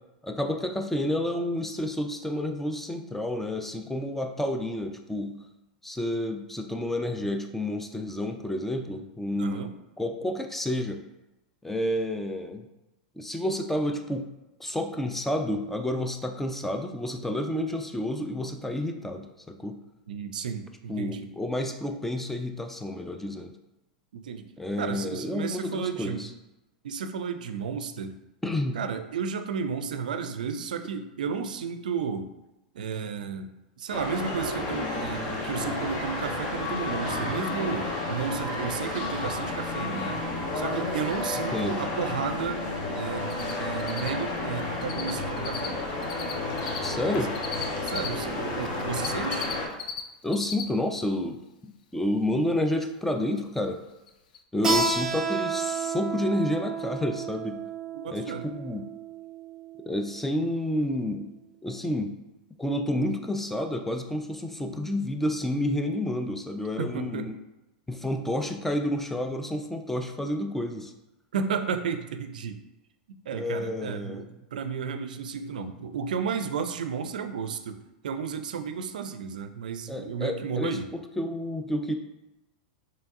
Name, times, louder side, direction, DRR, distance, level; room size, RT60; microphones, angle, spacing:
voice 1, 0.2-5.3 5.8-9.7 10.0-11.0 11.6-12.7 13.2-14.3 14.6-19.7 20.9-23.5 24.6-26.3 28.4-28.8 41.5-41.8 46.8-47.3 50.2-51.4 51.9-53.8 54.5-57.6 58.1-58.8 59.9-61.3 61.6-62.1 62.6-67.3 67.9-70.9 73.3-74.3 79.9-80.8 81.2-81.9, left 1 dB, 5° left, 5 dB, 0.4 m, -30 dB
voice 2, 9.3-9.7 20.1-21.3 24.1-24.5 24.8-26.3 26.8-28.1 28.7-32.3 32.7-33.5 33.8-40.3 40.5-42.6 42.9-45.8 47.1-47.3 47.8-49.6 57.9-58.5 66.8-67.3 71.3-72.6 73.3-77.8 78.0-80.9, right 6 dB, 85° right, 8 dB, 0.4 m, -33 dB
sound 1, 33.9-49.7, left 2 dB, 45° left, 0.9 m, -31 dB
Cricket, 43.3-43.5 43.8-45.1 45.4-48.1 48.6-50.0 50.3-50.6 51.0-51.1 53.6-53.7 54.1-54.2 54.3-54.4, left 8 dB, 80° left, 0.4 m, -35 dB
Keyboard (musical), 54.6-59.9, right 4 dB, 15° right, 0.9 m, -31 dB
4.5 x 3.1 x 2.6 m, 0.98 s
hypercardioid pair, 110°, 4 cm